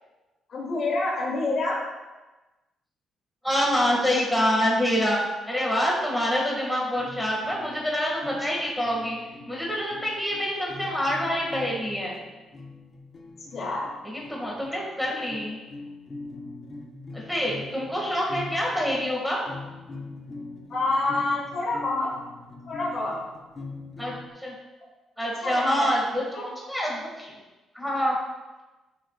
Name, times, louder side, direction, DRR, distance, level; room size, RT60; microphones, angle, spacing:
voice 1, 0.5-1.8 13.5-13.9 20.7-22.1 22.7-23.2 25.4-26.5, left 2 dB, 60° left, -3 dB, 2.8 m, -28 dB
voice 2, 3.4-5.2 5.5-9.2 9.5-12.2 14.0-15.6 17.1-19.4 24.0-24.1 24.4-24.5 25.2-26.4 26.7-27.4 27.7-28.2, equal, ahead, -3 dB, 2.1 m, -26 dB
sound 1, 7.0-24.3, left 3 dB, 40° left, 1.2 m, -42 dB
11.0 x 6.6 x 2.5 m, 1.1 s
cardioid pair, 90°, 0 cm